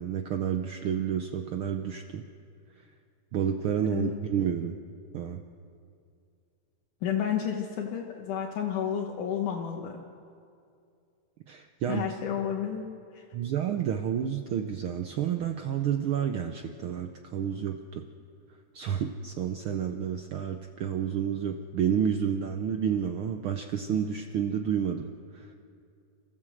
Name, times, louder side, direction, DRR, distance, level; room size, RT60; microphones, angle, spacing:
voice 1, 0.0-2.2 3.3-4.8 5.1-5.4 11.5-12.1 13.3-18.0 18.7-25.1 25.3-25.5, right 8 dB, 90° right, 6 dB, 1.1 m, -30 dB
voice 2, 7.0-10.0 11.9-12.8 13.1-13.2, left 8 dB, 85° left, -1 dB, 2.8 m, -31 dB
29.5 x 14.5 x 7.8 m, 2.4 s
omnidirectional pair, 3.4 m